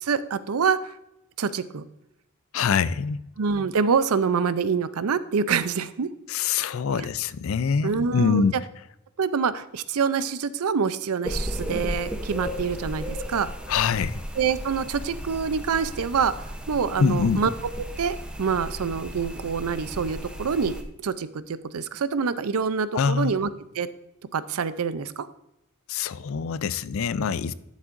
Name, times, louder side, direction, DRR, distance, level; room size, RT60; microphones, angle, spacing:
voice 1, 0.0-0.9 1.4-1.8 3.4-6.1 6.9-7.1 7.8-8.5 9.2-13.5 14.4-17.5 18.0-20.8 21.0-23.5 23.7-23.9 24.3-25.3, right 6 dB, 85° right, 0.5 m, -26 dB
voice 2, 2.5-3.2 6.3-8.5 13.7-14.2 17.0-17.4 22.9-23.3 25.9-27.5, left 6 dB, 65° left, 0.4 m, -24 dB
sound 1, 11.2-20.8, equal, 5° right, 0.7 m, -35 dB
12.0 x 7.3 x 2.6 m
head